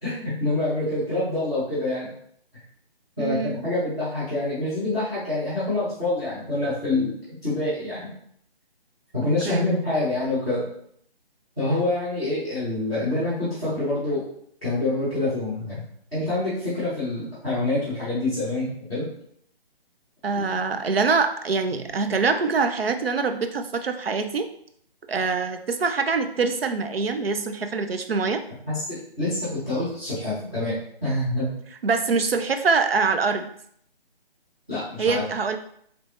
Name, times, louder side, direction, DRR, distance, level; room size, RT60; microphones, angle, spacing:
voice 1, 0.0-2.1 3.2-7.1 7.4-8.1 9.1-10.7 11.6-14.2 14.6-15.8 16.1-19.1 20.3-20.4 28.7-31.5 34.7-35.2, left 2 dB, 5° right, -17 dB, 0.6 m, -26 dB
voice 2, 3.2-3.6 9.5-9.7 20.2-24.5 25.1-28.4 31.8-33.5 35.0-35.6, right 4 dB, 70° right, 7 dB, 0.5 m, -24 dB
3.2 x 3.2 x 2.5 m, 0.66 s
figure-of-eight pair, 145°, 30 cm